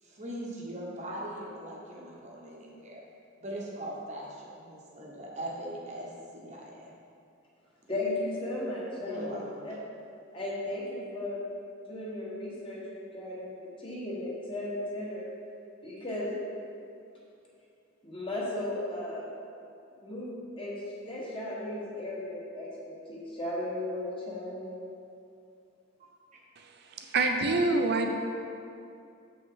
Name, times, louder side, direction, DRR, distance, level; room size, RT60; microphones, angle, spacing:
voice 1, 0.0-3.0 3.4-6.9 9.0-9.7 26.0-26.4, right 1 dB, 35° right, -3 dB, 1.1 m, -40 dB
voice 2, 7.9-9.7 10.3-11.5 11.9-15.2 15.8-16.3 18.0-19.3 20.0-20.7 21.1-24.9, left 1 dB, 25° left, -5 dB, 1.4 m, -36 dB
voice 3, 27.1-28.1, right 3 dB, 55° right, 4 dB, 0.6 m, -25 dB
7.5 x 5.4 x 3.8 m, 2.5 s
head